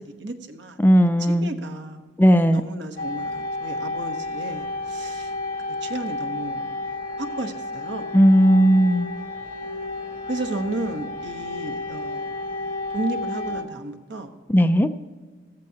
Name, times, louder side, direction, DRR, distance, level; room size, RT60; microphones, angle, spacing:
voice 1, 0.0-0.8 1.2-2.0 2.5-5.3 5.8-6.8 7.2-8.1 10.3-12.3 12.9-14.3, right 2 dB, 80° right, 6 dB, 1.1 m, -33 dB
voice 2, 0.8-1.5 2.2-2.6 8.1-9.1 14.5-14.9, equal, 10° left, 9 dB, 0.4 m, -16 dB
sound 1, 3.0-13.6, left 2 dB, 55° left, 2.2 m, -31 dB
14.5 x 14.5 x 2.8 m, 1.4 s
head